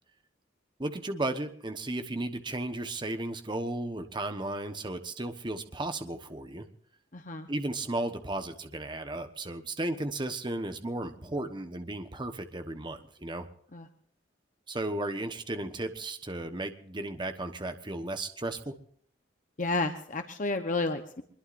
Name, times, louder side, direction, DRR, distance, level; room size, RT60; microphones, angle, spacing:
voice 1, 0.8-6.7 7.5-13.5 14.7-18.7, right 2 dB, 25° right, 7 dB, 1.2 m, -34 dB
voice 2, 7.1-7.5 13.7-13.9 19.6-21.2, left 3 dB, 40° left, 6 dB, 1.0 m, -31 dB
24.0 x 21.5 x 2.6 m, 0.63 s
head